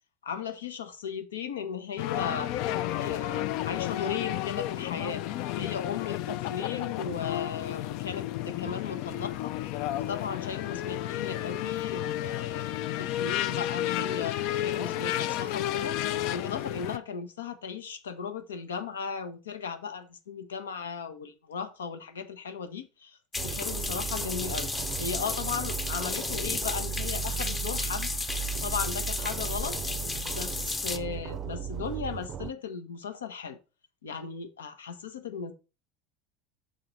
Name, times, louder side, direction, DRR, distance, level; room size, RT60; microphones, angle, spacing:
voice 1, 0.2-2.5 3.0-5.2 5.5-23.2 23.4-28.1 28.6-29.8 30.2-33.6 34.0-35.5, left 6 dB, 80° left, 0.9 m, -36 dB
sound 1, 2.0-17.0, left 13 dB, 60° left, 0.4 m, -32 dB
sound 2, 23.3-31.0, left 3 dB, 20° left, 0.9 m, -33 dB
sound 3, 23.4-32.5, right 8 dB, 40° right, 0.5 m, -36 dB
6.5 x 3.8 x 5.7 m
hypercardioid pair, 80°, 0 cm